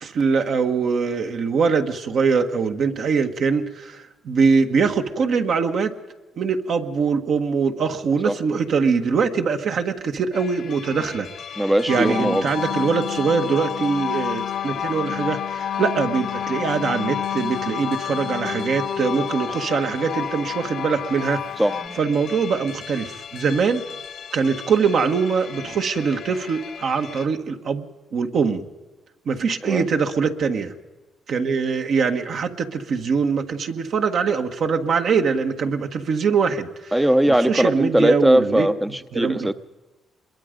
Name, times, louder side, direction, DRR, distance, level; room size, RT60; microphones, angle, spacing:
voice 1, 0.0-5.9 6.4-11.3 11.9-21.4 22.0-23.8 24.3-27.8 28.1-28.6 29.2-30.7 31.3-36.9 37.3-38.7 39.1-39.5, right 5 dB, 65° right, 5 dB, 1.5 m, -22 dB
sound 1, 10.3-27.3, left 7 dB, 60° left, 1.1 m, -38 dB
voice 2, 11.6-12.5 21.6-22.0 29.6-29.9 36.9-39.5, right 1 dB, 10° right, 10 dB, 0.7 m, -20 dB
sound 2, 11.9-21.9, left 9 dB, 75° left, 0.8 m, -29 dB
25.0 x 22.0 x 5.2 m, 1.2 s
cardioid pair, 80°, 0 cm